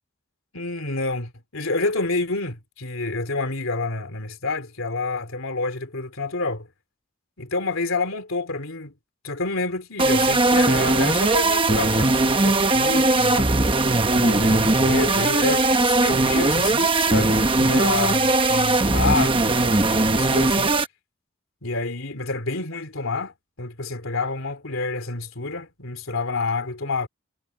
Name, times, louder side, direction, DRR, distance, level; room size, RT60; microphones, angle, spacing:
voice 1, 0.5-6.7 7.4-8.9 9.2-13.5 14.2-20.8 21.6-23.3 23.6-27.1, left 3 dB, 90° left, 3.2 m, -28 dB
sound 1, 10.0-20.9, right 2 dB, 25° right, 1.0 m, -19 dB
head